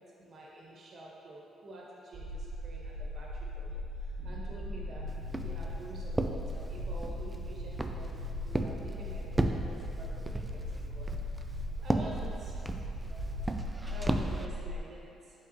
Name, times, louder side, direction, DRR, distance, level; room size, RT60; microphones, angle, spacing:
voice 1, 0.2-3.3 3.6-3.8 4.2-5.0 5.4-8.1 8.4-10.6 10.9-11.1 11.8-12.6 13.0-13.2 13.9-15.1, right 1 dB, 55° right, -4 dB, 1.5 m, -48 dB
sound 1, 2.1-14.8, left 1 dB, 70° right, 1.5 m, -39 dB
sound 2, 4.2-10.8, left 4 dB, 40° left, 0.7 m, -56 dB
Walk footsteps, 5.1-14.4, right 2 dB, 15° right, 0.4 m, -36 dB
8.7 x 5.2 x 2.9 m, 2.8 s
cardioid pair, 90°, 0 cm